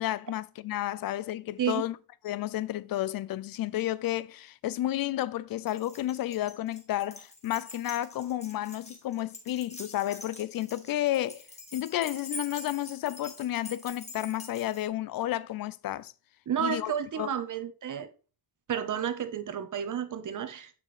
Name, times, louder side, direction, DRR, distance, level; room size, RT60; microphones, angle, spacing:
voice 1, 0.0-2.0 2.2-11.4 11.7-16.1 16.6-16.9 17.2-17.3, left 14 dB, 65° left, 0.5 m, -31 dB
Keys jangling, 5.7-14.9, left 2 dB, 15° left, 1.5 m, -45 dB
voice 2, 16.5-18.1 18.7-20.7, right 9 dB, 55° right, 0.9 m, -31 dB
7.5 x 5.9 x 3.2 m
cardioid pair, 110°, 37 cm